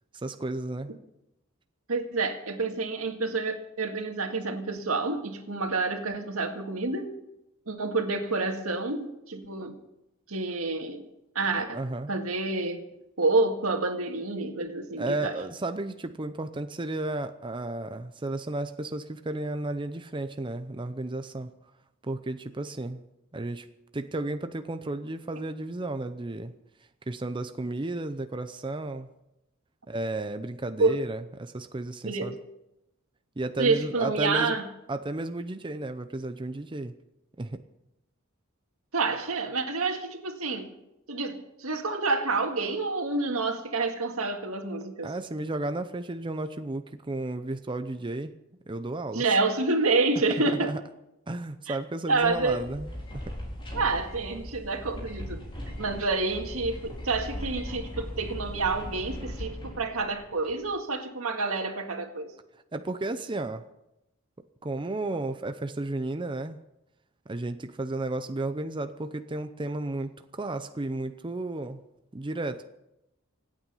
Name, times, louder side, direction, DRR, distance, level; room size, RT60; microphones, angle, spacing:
voice 1, 0.1-0.9 11.6-12.1 15.0-21.5 22.0-23.0 23.3-23.7 23.9-26.5 27.1-29.1 29.9-32.3 33.4-34.6 34.9-36.9 37.4-37.6 45.0-48.3 48.7-49.2 50.5-50.8 51.3-53.3 62.7-63.6 64.6-66.6 67.3-71.8 72.1-72.7, right 2 dB, 25° right, 9 dB, 0.6 m, -33 dB
voice 2, 1.9-7.1 7.7-9.8 10.3-11.1 11.4-11.8 12.1-12.8 13.2-15.4 30.8-31.0 32.0-32.3 33.6-34.7 38.9-40.7 41.1-45.1 49.1-50.7 51.7-51.8 52.1-52.6 53.7-55.4 55.8-62.3, right 3 dB, 85° right, 5 dB, 2.0 m, -28 dB
sound 1, 52.1-60.7, equal, 25° left, 4.3 m, -39 dB
26.0 x 9.0 x 5.6 m, 0.89 s
head